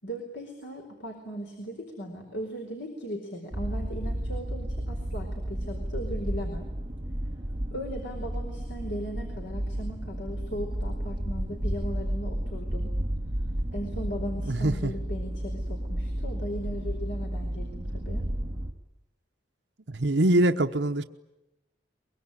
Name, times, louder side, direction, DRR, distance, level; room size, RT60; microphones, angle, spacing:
voice 1, 0.0-6.7 7.7-12.9 13.7-18.3, equal, 80° left, 2 dB, 4.5 m, -38 dB
sound 1, 3.5-18.7, right 1 dB, 25° right, 2.5 m, -32 dB
voice 2, 14.5-14.9 19.9-21.0, right 1 dB, 75° right, 7 dB, 1.0 m, -23 dB
23.5 x 23.0 x 9.9 m, 0.94 s
head